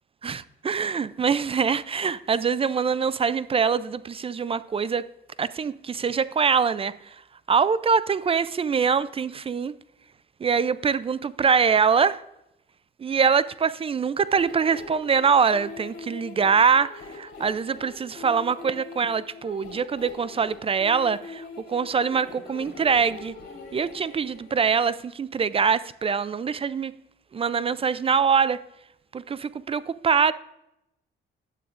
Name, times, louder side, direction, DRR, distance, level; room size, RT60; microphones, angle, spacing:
voice 1, 0.2-5.0 5.4-7.2 7.5-9.7 10.4-12.2 13.0-23.3 23.7-26.9 27.3-28.6 29.1-30.3, right 6 dB, 30° right, 0.3 m, -24 dB
sound 1, 14.2-24.7, left 4 dB, 70° left, 2.8 m, -43 dB
11.5 x 8.4 x 2.5 m
cardioid pair, 90°, 20 cm